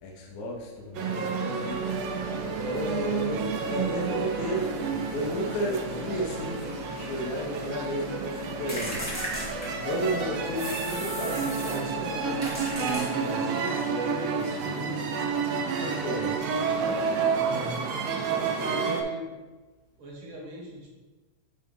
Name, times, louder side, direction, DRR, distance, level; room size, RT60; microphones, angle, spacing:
voice 1, 0.0-1.8 2.4-4.7 5.1-9.0 9.8-15.1 15.8-16.3, equal, 70° left, -2 dB, 2.1 m, -33 dB
sound 1, 0.9-19.0, right 5 dB, 80° right, 1.5 m, -30 dB
sound 2, 1.7-12.9, left 5 dB, 90° left, 2.2 m, -43 dB
sound 3, 8.7-10.1 10.6-11.9 12.4-13.5, equal, 10° left, 1.0 m, -36 dB
voice 2, 17.3-17.8 18.1-19.3 20.0-20.9, right 1 dB, 60° right, -3 dB, 1.5 m, -40 dB
8.9 x 4.2 x 3.6 m, 1.2 s
omnidirectional pair, 3.7 m